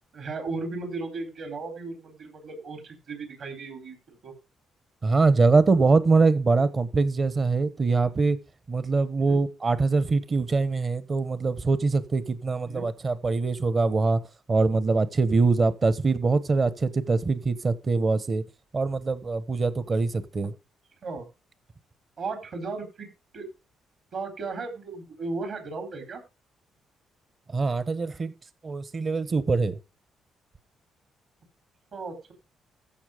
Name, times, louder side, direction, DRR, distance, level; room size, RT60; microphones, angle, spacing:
voice 1, 0.1-4.3 9.3-9.4 12.7-12.8 21.0-21.3 22.2-23.1 23.3-23.5 24.1-26.2 31.9-32.3, right 3 dB, 60° right, 4.2 m, -35 dB
voice 2, 5.0-8.4 8.7-14.2 14.5-18.4 18.7-20.5 27.5-28.3 28.6-29.8, right 3 dB, 35° right, 1.1 m, -23 dB
14.5 x 6.2 x 5.1 m
cardioid pair, 90°, 0 cm